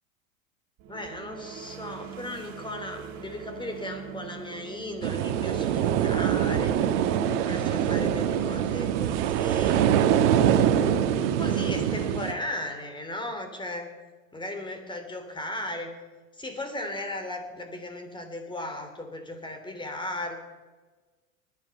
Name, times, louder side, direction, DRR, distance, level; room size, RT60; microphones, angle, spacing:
sound 1, 0.8-12.3, right 7 dB, 45° right, 2.8 m, -45 dB
voice 1, 0.9-6.7 7.3-9.9 10.8-13.9 14.3-15.9 16.4-20.4, left 1 dB, 10° left, 6 dB, 3.2 m, -36 dB
sound 2, 5.0-12.3, right 9 dB, 60° right, 1.4 m, -24 dB
20.0 x 12.0 x 5.9 m, 1.3 s
hypercardioid pair, 90°, 41 cm